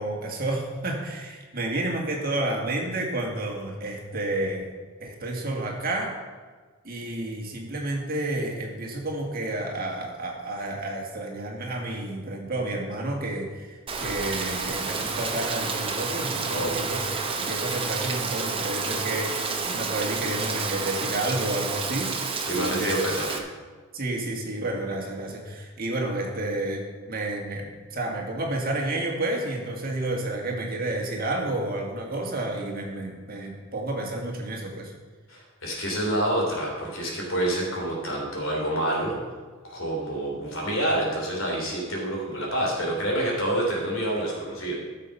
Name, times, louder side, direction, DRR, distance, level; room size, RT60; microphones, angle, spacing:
voice 1, 0.0-4.7 5.0-6.1 6.8-22.9 23.9-34.9, right 2 dB, 45° right, 0 dB, 1.9 m, -30 dB
Rain, 13.9-23.4, right 4 dB, 25° right, 0.9 m, -30 dB
voice 2, 16.5-16.9 22.5-23.4 35.3-39.2 39.6-44.7, right 1 dB, 65° left, -2 dB, 3.5 m, -27 dB
13.5 x 6.9 x 5.6 m, 1.4 s
head